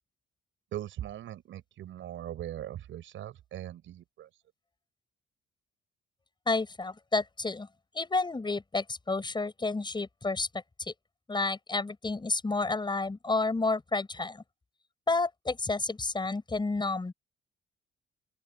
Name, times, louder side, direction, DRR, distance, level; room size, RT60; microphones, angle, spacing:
voice 1, 0.7-4.3, right 12 dB, 75° right, 6.0 m, -40 dB
voice 2, 6.5-7.7 7.9-10.9 11.3-14.4 15.1-17.1, left 3 dB, 20° left, 6.6 m, -30 dB
open air
cardioid pair, 90°, 20 cm